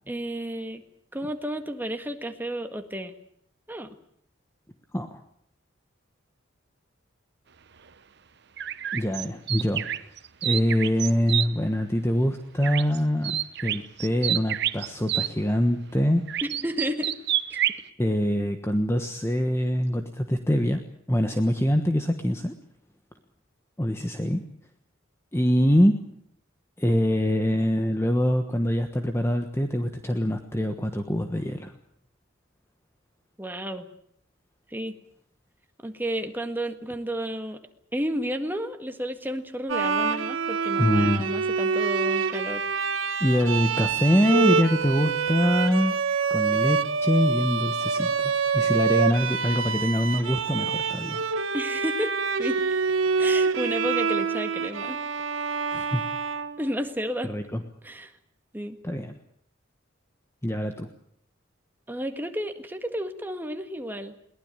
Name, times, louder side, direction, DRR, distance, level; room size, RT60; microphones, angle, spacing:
voice 1, 0.1-0.8 1.1-3.1 3.7-3.9 16.4-17.2 33.4-33.9 34.7-35.0 35.8-37.6 37.9-42.7 51.5-52.1 52.4-52.6 53.2-55.0 56.6-57.3 57.8-58.1 58.5-58.8 61.9-64.1, equal, 10° right, 6 dB, 1.8 m, -32 dB
sound 1, 8.6-11.5 12.6-13.0 13.2-15.3 16.3-17.8, right 12 dB, 55° right, 0.9 m, -28 dB
voice 2, 8.9-10.1 10.4-16.2 18.0-20.8 21.1-22.5 23.8-24.4 25.3-26.0 26.8-31.7 40.8-41.3 43.2-45.9 46.3-51.2 55.7-56.0 57.2-57.6 58.8-59.1 60.4-60.9, equal, 15° left, 6 dB, 1.2 m, -24 dB
Bowed string instrument, 39.7-57.1, right 5 dB, 80° right, 1.6 m, -26 dB
22.0 x 19.0 x 9.0 m, 0.68 s
head